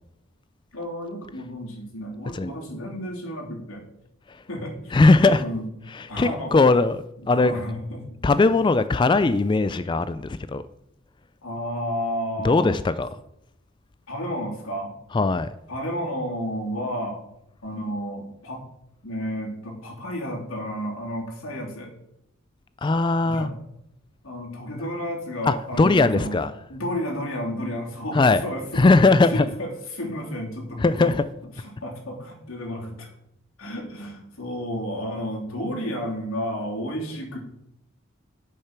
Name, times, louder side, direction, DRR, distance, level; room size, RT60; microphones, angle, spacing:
voice 1, 0.7-3.9 4.5-5.0 5.3-5.7 6.1-6.7 7.2-8.0 11.4-12.7 14.1-14.9 15.7-17.2 17.6-18.6 19.0-21.9 23.2-23.6 24.2-26.4 26.7-28.9 29.2-31.1 31.6-33.1 33.6-37.4, equal, 85° left, -1 dB, 3.1 m, -32 dB
voice 2, 4.9-5.4 6.2-7.5 8.2-10.6 12.4-13.1 15.1-15.5 22.8-23.5 25.4-26.5 28.1-28.4 28.8-29.5 30.8-31.2, left 3 dB, 20° left, 14 dB, 0.3 m, -19 dB
8.7 x 6.7 x 5.9 m, 0.81 s
head